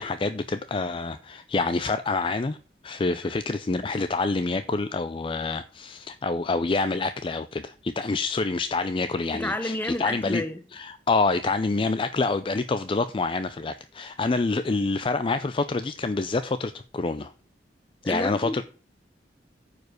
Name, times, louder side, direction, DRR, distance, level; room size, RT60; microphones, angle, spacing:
voice 1, 0.0-2.6 2.8-10.4 10.7-17.3 18.0-18.6, left 3 dB, 30° left, 0.4 m, -27 dB
voice 2, 9.3-10.6 18.0-18.6, left 1 dB, 10° left, 0.9 m, -30 dB
9.3 x 4.9 x 6.3 m
head